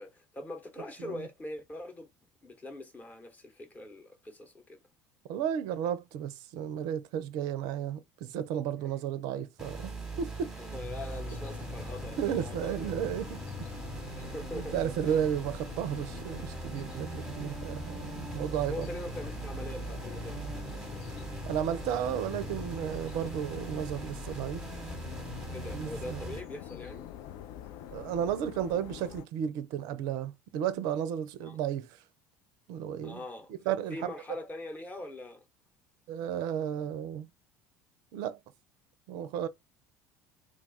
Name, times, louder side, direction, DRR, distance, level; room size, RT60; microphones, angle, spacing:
voice 1, 0.0-2.1 2.4-4.8 8.8-8.9 10.5-12.9 14.1-14.7 15.0-15.2 18.7-20.5 25.5-27.1 31.4-31.6 33.0-33.5 33.9-35.5, left 1 dB, 20° left, 0.9 m, -42 dB
voice 2, 5.3-10.5 12.2-13.4 14.5-18.9 21.5-24.7 25.7-26.3 27.9-32.0 32.7-33.2 33.5-34.1 36.1-37.3 38.1-38.4 39.1-39.5, right 9 dB, 55° right, 0.4 m, -33 dB
sound 1, 9.6-26.4, right 2 dB, 5° right, 1.0 m, -40 dB
sound 2, 11.1-29.3, left 11 dB, 50° left, 0.4 m, -46 dB
2.4 x 2.3 x 3.9 m
figure-of-eight pair, 65°, 8 cm